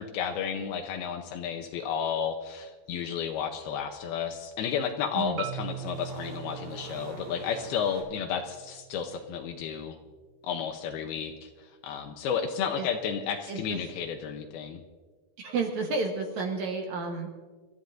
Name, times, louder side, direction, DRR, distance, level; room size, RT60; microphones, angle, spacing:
voice 1, 0.0-10.0 10.4-11.5 11.8-14.8, left 7 dB, 80° left, 4 dB, 2.7 m, -32 dB
sound 1, 4.3-8.0, right 2 dB, 50° right, 3.0 m, -46 dB
Marimba xylophone, 5.4-9.5, right 12 dB, 85° right, 1.6 m, -42 dB
voice 2, 13.5-13.8 15.4-17.3, right 4 dB, 65° right, 2 dB, 2.1 m, -31 dB
27.0 x 13.5 x 2.6 m, 1.4 s
omnidirectional pair, 4.5 m